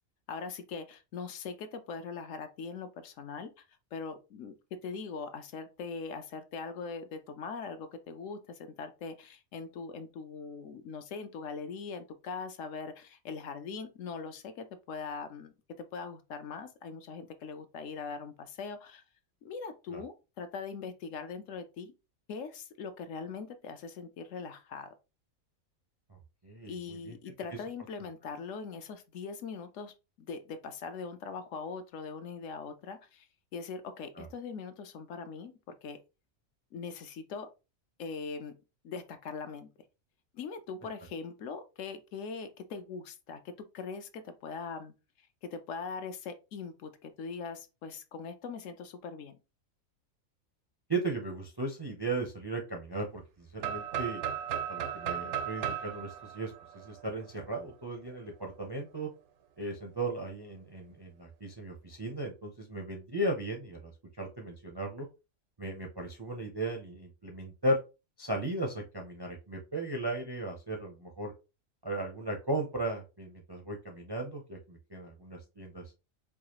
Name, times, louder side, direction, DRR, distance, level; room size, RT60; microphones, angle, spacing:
voice 1, 0.3-3.6 3.9-19.0 19.4-21.9 22.3-24.9 26.7-36.0 36.7-37.5 38.0-38.5 38.8-39.7 40.3-49.4, left 5 dB, 70° left, 0.9 m, -41 dB
voice 2, 26.4-27.2 34.2-34.3 50.9-54.2 54.7-59.1 59.6-63.9 64.2-65.1 65.6-67.8 68.2-71.3 71.8-75.8, right 2 dB, 35° right, 0.4 m, -36 dB
sound 1, 53.6-57.4, right 9 dB, 65° right, 0.8 m, -36 dB
4.7 x 2.3 x 2.9 m
omnidirectional pair, 1.4 m